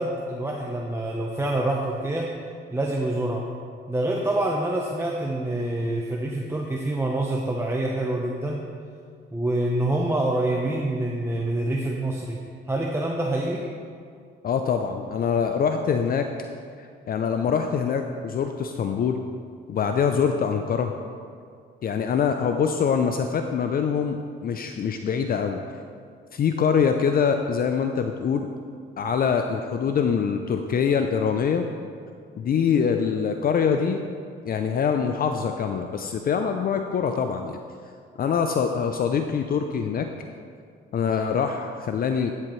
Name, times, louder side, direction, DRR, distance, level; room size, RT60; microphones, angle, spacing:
voice 1, 0.0-2.3 2.7-3.4 3.9-8.6 9.3-12.4 12.7-13.6, right 1 dB, 15° right, -2 dB, 0.8 m, -26 dB
voice 2, 14.4-16.3 16.8-19.2 19.7-20.9 21.8-25.6 26.3-28.5 29.0-31.7 32.4-34.0 34.4-37.6 38.2-40.1 40.9-42.3, left 6 dB, 50° left, 6 dB, 0.5 m, -24 dB
11.0 x 7.6 x 3.2 m, 2.2 s
cardioid pair, 90°, 20 cm